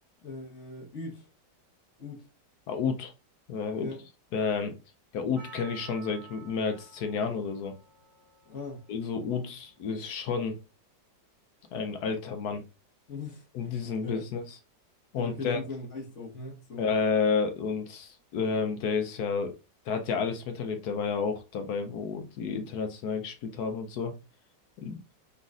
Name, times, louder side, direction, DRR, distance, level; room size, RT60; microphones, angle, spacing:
voice 1, 0.2-1.3 2.0-2.3 3.8-4.1 8.5-8.8 13.1-13.5 14.0-14.2 15.1-16.9, left 3 dB, 45° left, 1.2 m, -39 dB
voice 2, 2.7-3.1 3.5-3.9 4.3-4.7 5.1-7.7 8.9-10.6 11.7-12.6 13.5-14.6 15.1-15.6 16.8-19.6 19.9-24.1 24.8-25.0, left 5 dB, 70° left, 1.1 m, -30 dB
Percussion, 5.4-9.7 10.4-10.5, right 7 dB, 60° right, 2.2 m, -52 dB
4.1 x 3.8 x 2.4 m
omnidirectional pair, 1.9 m